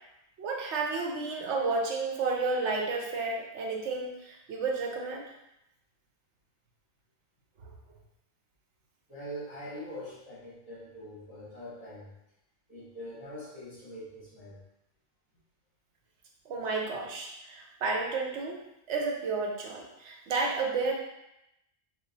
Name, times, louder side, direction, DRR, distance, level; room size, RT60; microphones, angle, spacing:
voice 1, 0.4-5.3 16.5-18.6 18.9-20.9, right 3 dB, 80° right, 0 dB, 0.9 m, -31 dB
voice 2, 9.1-12.1 12.7-14.6, equal, 35° left, -7 dB, 0.9 m, -43 dB
3.0 x 2.3 x 3.9 m, 0.85 s
omnidirectional pair, 1.2 m